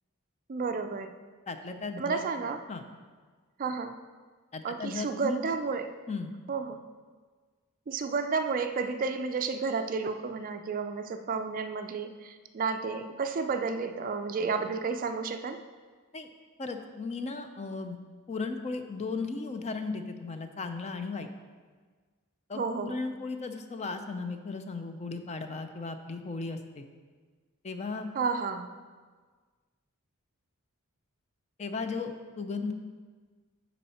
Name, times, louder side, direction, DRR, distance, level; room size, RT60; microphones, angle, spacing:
voice 1, 0.5-1.1 2.0-2.6 3.6-4.0 4.6-5.9 6.5-6.8 7.9-15.6 22.5-23.0 28.2-28.7, right 4 dB, 40° right, 7 dB, 0.3 m, -31 dB
voice 2, 1.5-2.2 2.7-2.8 4.5-5.4 6.1-6.3 16.1-16.3 16.6-18.0 18.3-21.3 22.5-26.9 27.6-28.1 31.6-32.7, left 4 dB, 30° left, 7 dB, 0.5 m, -36 dB
11.0 x 4.2 x 4.2 m, 1.5 s
head